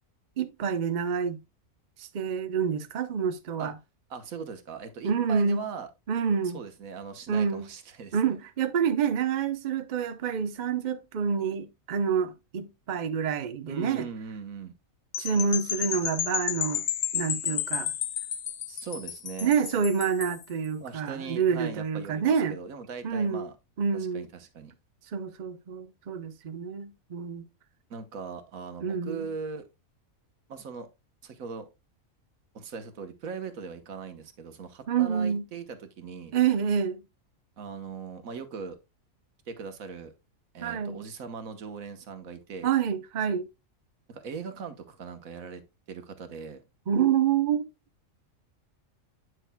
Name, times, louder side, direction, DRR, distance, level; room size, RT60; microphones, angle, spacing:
voice 1, 0.4-1.4 2.0-3.7 5.0-5.6 6.1-6.6 7.3-7.7 8.1-14.1 15.2-16.8 17.1-17.9 18.7-18.8 19.4-22.6 23.0-23.5 23.8-24.3 25.1-27.5 28.8-29.3 34.9-35.4 36.3-37.0 40.6-41.0 42.6-43.5 46.9-47.7, right 7 dB, 45° right, 0.7 m, -27 dB
voice 2, 4.1-5.9 6.5-8.3 13.7-14.7 18.8-19.5 20.8-23.5 23.9-24.7 27.9-29.7 30.5-30.9 31.2-31.7 32.5-36.3 37.6-38.8 39.5-40.1 40.5-42.7 44.1-45.6 45.9-46.6, right 5 dB, 90° right, 1.5 m, -39 dB
sound 1, 15.1-20.4, left 10 dB, 65° left, 0.9 m, -32 dB
9.1 x 6.4 x 2.2 m
omnidirectional pair, 1.4 m